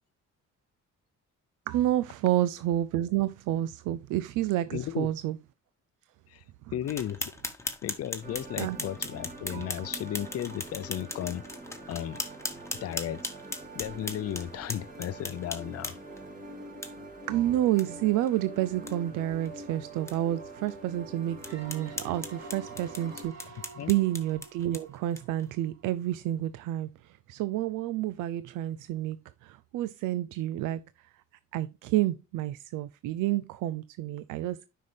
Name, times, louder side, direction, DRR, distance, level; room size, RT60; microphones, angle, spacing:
voice 1, 1.7-5.4 8.6-8.8 9.5-9.7 17.3-29.2 29.4-31.1 31.5-34.7, right 14 dB, 90° right, 0.5 m, -29 dB
voice 2, 4.7-5.1 6.3-6.4 6.7-7.3 7.8-11.4 11.8-12.2 12.8-13.3 13.7-16.0 23.8-23.9, left 11 dB, 55° left, 0.6 m, -35 dB
sound 1, 6.9-16.2 16.8-16.9 17.3-17.4 17.8-17.9 18.2-18.3 18.7-18.9 19.4-19.5 20.1-20.2 20.7-20.8 21.4-25.4, left 2 dB, 10° left, 1.3 m, -39 dB
sound 2, 8.2-23.2, right 2 dB, 30° right, 2.9 m, -45 dB
sound 3, 21.4-26.0, right 4 dB, 60° right, 3.8 m, -49 dB
9.4 x 5.6 x 3.3 m
cardioid pair, 90°, 30 cm